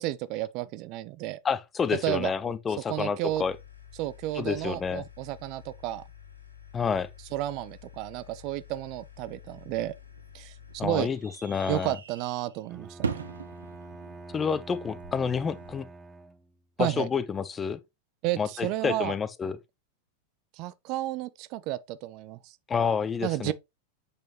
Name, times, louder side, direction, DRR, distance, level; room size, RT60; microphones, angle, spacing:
voice 1, 0.0-1.4 2.0-2.3 2.9-3.4 4.0-6.0 7.3-9.9 10.3-11.1 11.7-13.2 16.8-17.1 18.2-19.1 20.5-22.5 23.2-23.5, right 15 dB, 40° right, 0.5 m, -32 dB
voice 2, 1.4-3.5 4.3-5.0 6.7-7.1 10.8-11.9 14.3-15.9 16.8-17.8 18.4-19.6 22.7-23.5, left 6 dB, 20° left, 0.9 m, -29 dB
sound 1, 3.3-10.8, left 9 dB, 80° left, 3.1 m, -50 dB
sound 2, 9.7-15.7, right 5 dB, 70° right, 1.0 m, -41 dB
Bowed string instrument, 12.7-16.6, right 2 dB, 10° right, 1.3 m, -46 dB
8.4 x 6.3 x 3.1 m
figure-of-eight pair, 90°, 0 cm